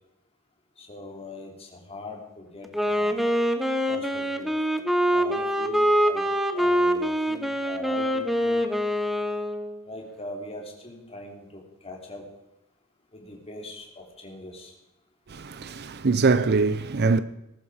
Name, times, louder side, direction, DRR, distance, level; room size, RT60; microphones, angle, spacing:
voice 1, 0.8-3.3 3.9-4.5 5.1-6.3 6.5-8.7 9.8-12.2 13.1-14.7, left 1 dB, 25° left, 3.2 m, -41 dB
Wind instrument woodwind instrument, 2.6-9.8, equal, ahead, 1.0 m, -24 dB
voice 2, 15.3-17.2, right 4 dB, 50° right, 0.6 m, -23 dB
20.0 x 12.0 x 4.9 m
head